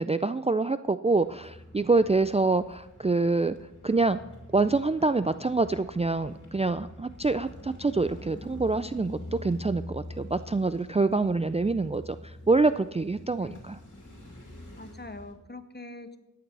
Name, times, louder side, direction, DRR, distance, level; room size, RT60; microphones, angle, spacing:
voice 1, 0.0-3.6 3.8-4.2 4.5-13.8, right 3 dB, 20° right, 12 dB, 0.3 m, -26 dB
sound 1, 1.1-15.3, left 1 dB, 65° left, 2.8 m, -46 dB
voice 2, 11.0-11.6 13.4-13.6 14.7-16.2, left 2 dB, 35° left, 9 dB, 1.0 m, -44 dB
12.0 x 8.8 x 5.4 m, 0.96 s
wide cardioid pair, 45°, 31 cm